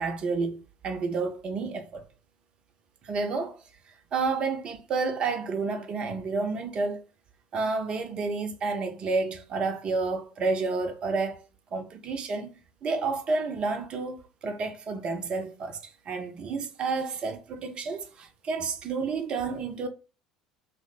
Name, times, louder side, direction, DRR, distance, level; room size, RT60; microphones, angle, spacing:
voice 1, 0.0-2.0 3.0-3.6 4.1-7.0 7.5-11.4 11.7-12.5 12.8-19.9, right 4 dB, 40° right, 0.6 m, -30 dB
3.0 x 2.1 x 3.8 m
figure-of-eight pair, 65°, 3 cm